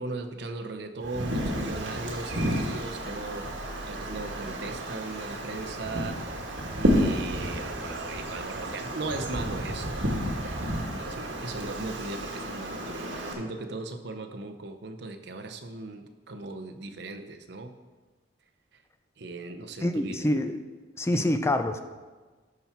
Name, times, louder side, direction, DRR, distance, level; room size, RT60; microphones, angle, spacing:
voice 1, 0.0-10.1 10.4-10.6 10.9-17.7 19.2-20.3 21.1-21.3, right 2 dB, 65° right, 7 dB, 0.8 m, -38 dB
Wind, 1.0-13.3, equal, 90° right, 1.5 m, -31 dB
voice 2, 19.8-20.6 21.0-21.8, left 1 dB, 15° left, 8 dB, 0.5 m, -26 dB
12.5 x 5.8 x 4.5 m, 1.3 s
head